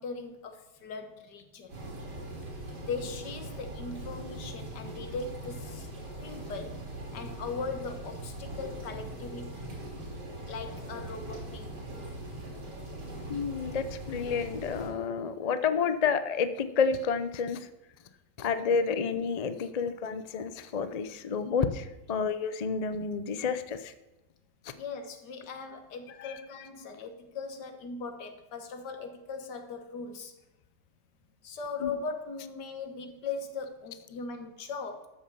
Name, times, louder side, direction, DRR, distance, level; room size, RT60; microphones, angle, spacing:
voice 1, 0.0-1.7 2.9-5.9 6.2-6.8 7.1-9.7 10.5-11.7 24.7-30.3 31.4-35.1, left 4 dB, 85° left, 7 dB, 1.9 m, -39 dB
sound 1, 1.7-14.9, right 1 dB, 75° right, 3.4 m, -41 dB
voice 2, 13.3-17.7 18.4-23.9 24.6-24.7 26.2-26.4 31.8-31.9, left 6 dB, 60° left, 11 dB, 0.4 m, -30 dB
13.0 x 6.2 x 6.8 m, 0.99 s
omnidirectional pair, 1.8 m